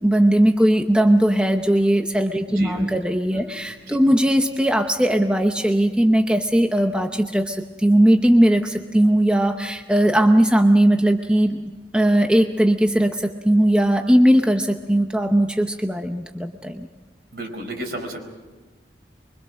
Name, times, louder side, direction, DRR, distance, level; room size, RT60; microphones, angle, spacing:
voice 1, 0.0-11.6 11.9-16.9, right 1 dB, 5° right, 5 dB, 0.7 m, -18 dB
voice 2, 2.5-2.9 3.3-3.5 3.9-4.0 17.3-18.2, right 1 dB, 65° right, 3 dB, 4.8 m, -33 dB
25.0 x 23.5 x 6.4 m, 1.2 s
head